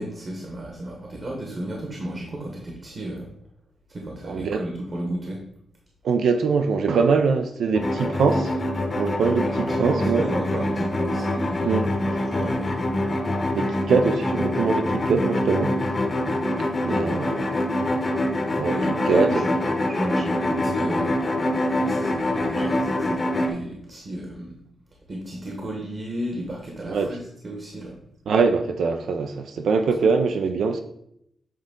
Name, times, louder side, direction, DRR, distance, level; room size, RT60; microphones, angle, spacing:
voice 1, 0.0-3.3 3.9-5.4 9.2-9.4 9.7-12.9 16.8-17.3 18.6-21.2 21.7-24.6 25.1-27.2 27.4-28.0 30.0-30.1, right 1 dB, 35° right, 1.1 m, -33 dB
voice 2, 4.2-4.6 6.0-8.6 9.0-10.2 11.6-11.9 13.5-15.8 16.9-17.6 18.6-19.4 26.9-27.1 28.3-30.8, right 5 dB, 80° right, 0.5 m, -23 dB
sound 1, 7.7-23.5, left 1 dB, 30° left, 0.8 m, -25 dB
7.7 x 3.8 x 3.6 m
wide cardioid pair, 150°, 0 cm